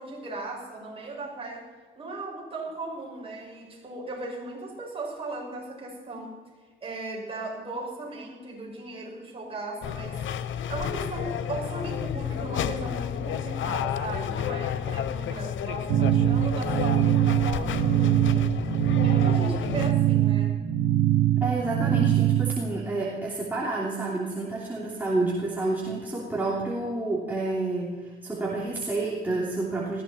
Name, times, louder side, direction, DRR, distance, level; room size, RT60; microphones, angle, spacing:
voice 1, 0.0-1.7 2.0-6.4 6.8-20.6, right 2 dB, 30° right, -3 dB, 6.1 m, -37 dB
sound 1, 9.8-19.9, left 9 dB, 75° left, 0.9 m, -31 dB
sound 2, 15.9-22.6, right 13 dB, 70° right, 1.0 m, -23 dB
voice 2, 21.4-30.0, right 2 dB, 10° right, -5 dB, 3.1 m, -29 dB
19.5 x 15.5 x 4.4 m, 1.5 s
cardioid pair, 120°, 20 cm